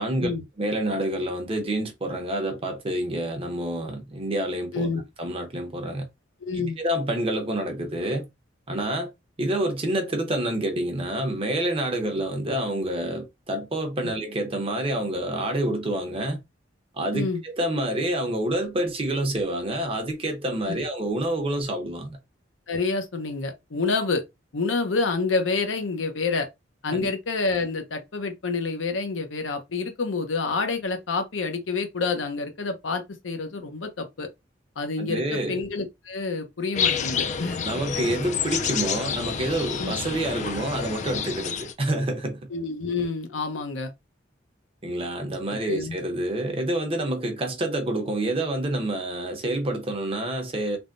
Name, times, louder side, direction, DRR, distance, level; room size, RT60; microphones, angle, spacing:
voice 1, 0.0-0.3 0.6-4.9 5.2-6.0 6.8-8.3 8.7-9.1 9.4-16.4 16.9-22.2 26.9-27.1 35.0-35.6 37.6-42.4 44.8-50.8, right 1 dB, 30° right, 0.7 m, -28 dB
voice 2, 6.4-6.8 14.0-14.1 17.1-17.4 20.7-20.8 22.7-24.2 24.5-26.5 26.8-34.3 34.8-37.7 39.8-39.9 42.5-43.9 45.5-45.9, left 4 dB, 85° left, 0.7 m, -28 dB
sound 1, 36.7-41.7, left 7 dB, 40° left, 0.4 m, -29 dB
3.4 x 2.1 x 2.5 m
head